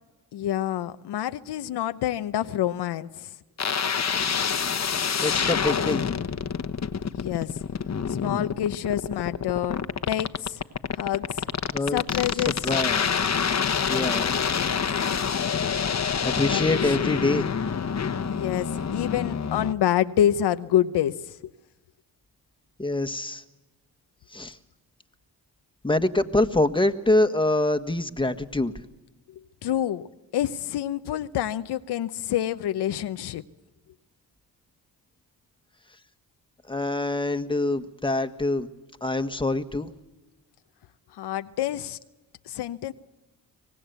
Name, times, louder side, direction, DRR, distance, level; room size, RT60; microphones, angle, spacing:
voice 1, 0.3-3.3 7.1-7.5 8.1-9.8 10.1-10.6 11.0-11.5 11.9-12.7 14.6-14.8 16.5-17.1 18.2-21.3 29.6-30.1 30.3-33.4 41.2-42.0 42.5-42.9, left 11 dB, 75° left, 11 dB, 0.9 m, -27 dB
sound 1, 3.6-19.7, left 6 dB, 40° left, 1.2 m, -27 dB
voice 2, 5.2-6.0 11.7-12.0 12.6-13.5 13.9-14.3 16.2-17.5 22.8-23.4 24.3-24.6 25.8-28.7 36.7-38.7 39.0-39.9, left 2 dB, 10° left, 8 dB, 1.6 m, -25 dB
25.0 x 18.5 x 8.2 m, 1.1 s
supercardioid pair, 55°, 40 cm